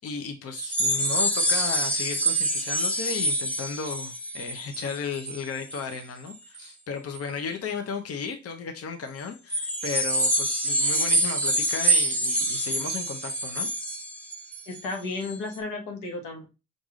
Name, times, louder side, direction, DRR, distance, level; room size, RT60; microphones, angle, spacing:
voice 1, 0.0-13.7, left 5 dB, 50° left, 6 dB, 0.8 m, -34 dB
sound 1, 0.5-6.0 6.3-6.6 7.1-7.2 9.5-14.8 15.2-15.4, right 1 dB, 5° left, 1.1 m, -26 dB
voice 2, 14.7-16.5, left 3 dB, 85° left, 4 dB, 1.1 m, -33 dB
4.8 x 2.6 x 3.6 m, 0.29 s
cardioid pair, 90°, 30 cm